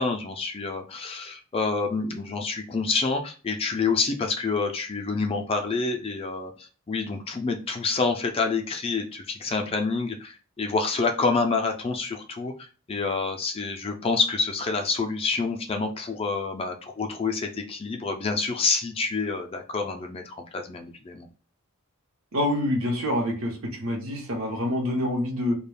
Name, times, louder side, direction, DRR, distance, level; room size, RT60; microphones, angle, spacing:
voice 1, 0.0-21.3, left 4 dB, 25° left, 4 dB, 0.3 m, -28 dB
voice 2, 22.3-25.6, left 1 dB, 75° right, 0 dB, 0.8 m, -26 dB
2.3 x 2.2 x 3.3 m, 0.36 s
head